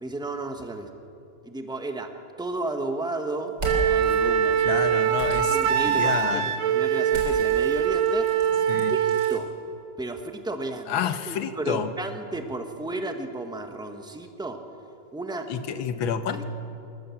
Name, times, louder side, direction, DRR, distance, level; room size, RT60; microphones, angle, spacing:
voice 1, 0.0-0.9 1.4-2.1 2.4-4.6 5.2-8.3 8.9-9.5 10.0-11.0 11.3-14.6 15.1-15.5 16.3-16.4, right 2 dB, 5° right, 5 dB, 1.0 m, -33 dB
sound 1, 3.5-4.2 5.1-6.3 7.1-9.4, right 1 dB, 65° right, 4.3 m, -36 dB
Wind instrument woodwind instrument, 3.6-9.4, right 8 dB, 90° right, 1.7 m, -23 dB
voice 2, 4.6-6.5 8.7-9.0 10.9-11.9 15.5-16.4, left 8 dB, 90° left, 10 dB, 1.8 m, -29 dB
28.0 x 13.5 x 7.2 m, 2.7 s
omnidirectional pair, 2.1 m